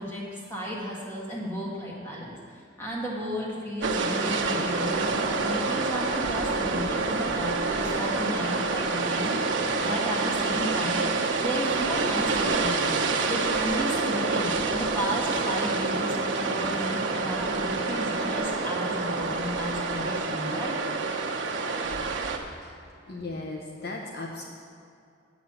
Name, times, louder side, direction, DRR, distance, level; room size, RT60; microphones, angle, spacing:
voice 1, 0.0-9.3 9.8-11.0 11.4-13.0 13.3-20.8, equal, 15° left, -5 dB, 1.8 m, -33 dB
sound 1, 3.8-22.4, right 3 dB, 70° right, 1.0 m, -27 dB
voice 2, 22.6-24.4, left 2 dB, 55° left, 0 dB, 0.9 m, -37 dB
8.3 x 6.1 x 7.6 m, 2.4 s
head